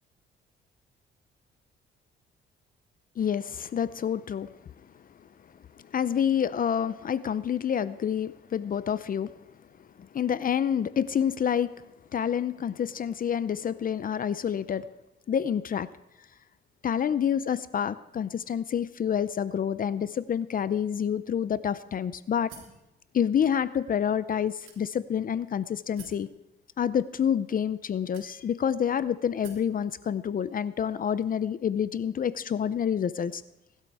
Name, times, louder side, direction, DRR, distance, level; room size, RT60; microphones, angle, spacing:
voice 1, 3.2-4.5 5.2-5.3 5.8-9.3 10.0-11.7 12.1-14.8 15.3-15.9 16.8-22.5 23.1-26.3 26.8-33.4, left 8 dB, 45° left, 15 dB, 0.6 m, -28 dB
sound 1, 22.5-22.8 23.6-23.7 24.7-25.2 26.0-26.3 27.2-27.3 28.1-28.7 29.4-29.7, right 5 dB, 90° right, 3.3 m, -49 dB
19.5 x 12.0 x 4.8 m, 0.90 s
cardioid pair, 90°, 20 cm